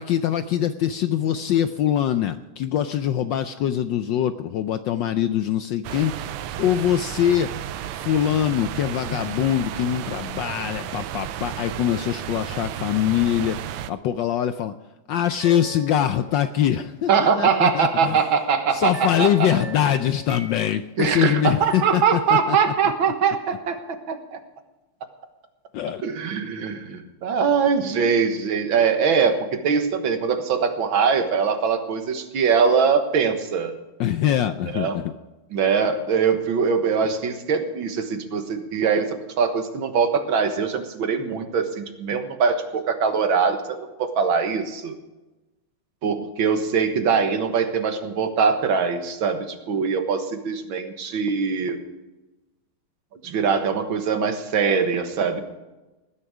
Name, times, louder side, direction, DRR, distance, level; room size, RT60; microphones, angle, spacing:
voice 1, 0.0-7.5 8.0-13.6 13.9-14.7 15.1-18.2 18.7-22.6 25.7-26.0 34.0-35.1, left 10 dB, 75° left, 10 dB, 1.1 m, -23 dB
sound 1, 5.8-13.9, right 11 dB, 80° right, 1.6 m, -33 dB
sound 2, 15.3-16.7 18.2-21.9, right 1 dB, 25° right, 0.8 m, -41 dB
voice 2, 17.1-19.6 21.0-24.4 26.0-33.8 34.7-35.0 35.5-45.0 46.0-51.8 53.1-55.4, right 6 dB, 65° right, 7 dB, 2.1 m, -22 dB
19.0 x 10.0 x 4.9 m, 1.1 s
omnidirectional pair, 2.4 m